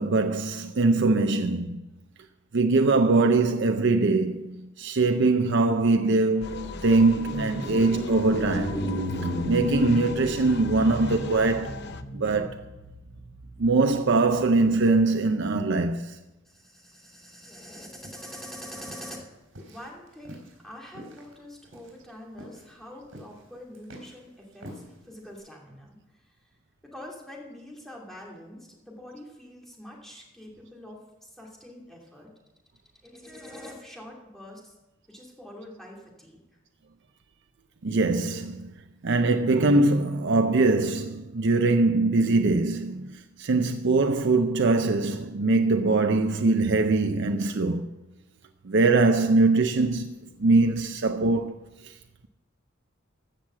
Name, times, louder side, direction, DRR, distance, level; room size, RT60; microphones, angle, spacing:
voice 1, 0.0-1.8 2.5-8.8 9.2-12.6 13.6-16.2 37.8-38.7 39.0-47.8 48.6-50.1 50.4-51.9, right 3 dB, 65° right, 0.6 m, -22 dB
sound 1, 5.3-14.9, equal, 30° left, 3.8 m, -34 dB
sound 2, 6.4-12.0, left 4 dB, 55° left, 0.8 m, -39 dB
voice 2, 16.4-19.2 19.6-26.5 26.8-32.3 33.0-34.7 35.1-36.4, left 1 dB, ahead, 2.7 m, -45 dB
sound 3, 17.5-25.3, equal, 85° right, 4.3 m, -48 dB
15.0 x 6.3 x 7.4 m
head